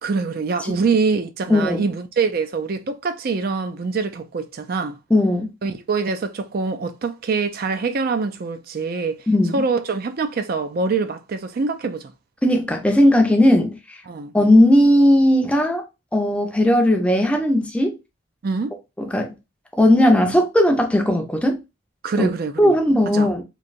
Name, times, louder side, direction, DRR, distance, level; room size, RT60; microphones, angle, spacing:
voice 1, 0.0-5.0 5.6-9.3 9.5-12.1 14.1-14.3 18.4-18.8 22.0-22.8 23.1-23.3, right 4 dB, 50° right, 0.4 m, -24 dB
voice 2, 1.5-1.8 5.1-5.5 9.3-9.6 12.4-14.0 14.3-15.8 16.1-18.0 19.0-19.3 19.8-21.6 22.2-22.3 22.6-23.4, left 1 dB, 5° left, 0.5 m, -17 dB
3.1 x 2.7 x 2.5 m
head